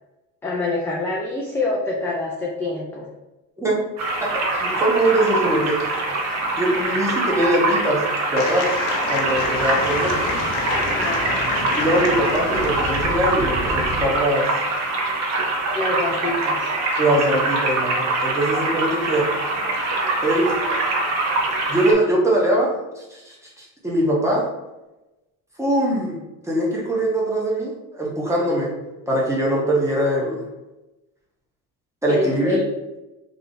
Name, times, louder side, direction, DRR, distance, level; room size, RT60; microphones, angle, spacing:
voice 1, 0.4-3.1 10.7-11.3 15.7-16.7 32.1-32.6, left 2 dB, 5° left, -4 dB, 0.3 m, -26 dB
sound 1, 4.0-21.9, right 2 dB, 50° right, 0.8 m, -24 dB
voice 2, 4.6-6.0 6.5-8.0 8.3-8.7 9.1-10.1 11.7-14.5 17.0-19.3 20.2-20.5 21.7-22.7 23.0-24.4 25.6-26.2 26.5-28.7 29.1-30.4 32.0-32.6, right 1 dB, 10° right, -4 dB, 0.9 m, -22 dB
sound 2, 8.4-13.1, left 3 dB, 65° left, 0.7 m, -28 dB
sound 3, 9.0-14.2, left 1 dB, 35° left, 0.9 m, -32 dB
3.4 x 2.7 x 3.8 m, 1.0 s
cardioid pair, 160°, 34 cm